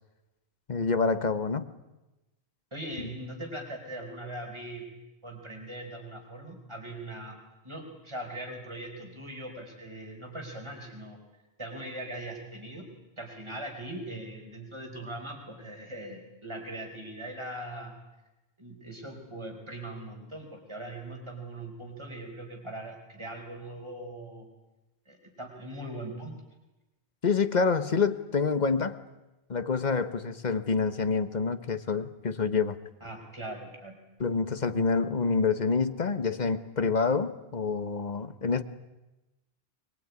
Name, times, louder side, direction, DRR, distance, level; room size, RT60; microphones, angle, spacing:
voice 1, 0.7-1.7 27.2-29.0 29.5-32.8 34.2-38.6, left 5 dB, 45° left, 11 dB, 1.3 m, -27 dB
voice 2, 2.7-4.9 5.2-7.4 7.6-11.2 11.6-12.9 13.2-17.9 18.6-24.5 25.1-26.3 33.0-34.0, right 1 dB, 25° right, 2 dB, 4.8 m, -40 dB
23.0 x 22.5 x 9.7 m, 1.0 s
omnidirectional pair, 1.1 m